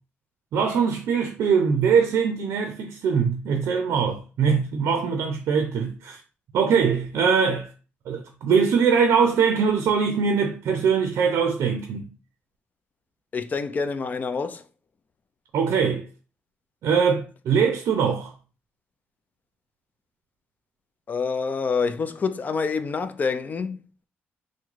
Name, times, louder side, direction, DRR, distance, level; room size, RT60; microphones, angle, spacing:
voice 1, 0.5-6.2 6.5-7.7 8.1-12.0 15.5-16.0 16.8-18.3, right 6 dB, 75° right, 0.5 m, -22 dB
voice 2, 13.3-14.6 21.1-23.8, left 5 dB, 35° left, 0.4 m, -27 dB
3.4 x 2.1 x 3.1 m
cardioid pair, 95°, 5 cm